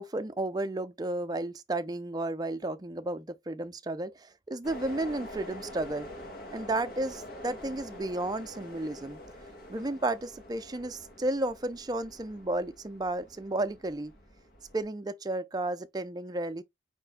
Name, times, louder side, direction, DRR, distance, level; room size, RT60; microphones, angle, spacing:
voice 1, 0.0-6.1 6.5-9.2 9.7-14.1 14.7-16.6, right 2 dB, 20° right, 0.5 m, -33 dB
sound 1, 4.6-14.8, left 1 dB, 50° left, 1.9 m, -46 dB
5.1 x 4.4 x 2.2 m
head